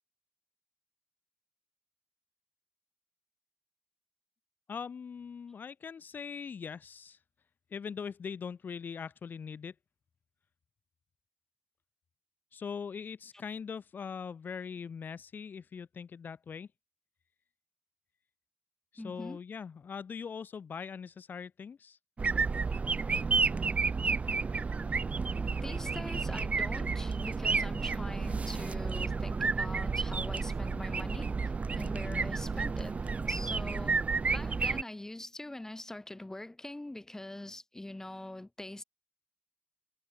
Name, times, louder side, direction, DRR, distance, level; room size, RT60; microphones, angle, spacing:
voice 1, 4.7-7.2 7.7-9.7 12.5-16.7 18.9-22.0 32.1-32.3, left 6 dB, 80° left, 0.8 m, -41 dB
voice 2, 19.0-19.4 25.6-31.3 31.8-33.0 33.3-34.0 34.3-38.8, left 1 dB, 15° left, 3.9 m, -43 dB
sound 1, 22.2-34.8, right 4 dB, 45° right, 0.6 m, -31 dB
wide cardioid pair, 150°, 3 cm